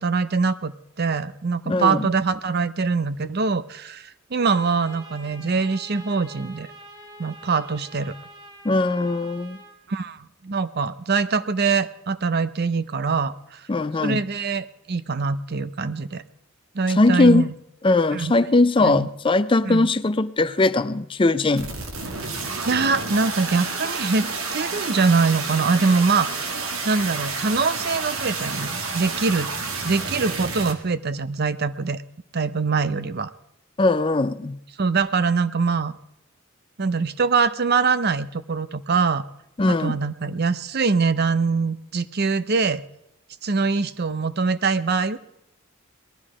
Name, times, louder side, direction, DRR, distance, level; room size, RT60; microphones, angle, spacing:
voice 1, 0.0-6.7 7.2-8.2 9.9-13.7 14.0-16.2 16.7-17.5 18.1-18.3 18.8-19.1 19.6-19.9 22.6-24.3 24.5-26.3 26.8-29.5 29.8-32.0 32.3-33.3 34.8-36.0 36.8-39.2 39.7-42.8 43.4-45.2, right 4 dB, 50° right, 0.6 m, -23 dB
voice 2, 1.7-2.1 8.6-9.6 13.7-14.2 16.9-17.5 17.8-21.7 33.8-34.6 39.6-40.0, left 2 dB, 25° left, 0.4 m, -20 dB
Trumpet, 4.4-9.8, right 1 dB, 20° right, 2.1 m, -45 dB
sound 1, 21.6-30.7, right 4 dB, 80° right, 2.0 m, -30 dB
19.0 x 12.5 x 4.9 m
head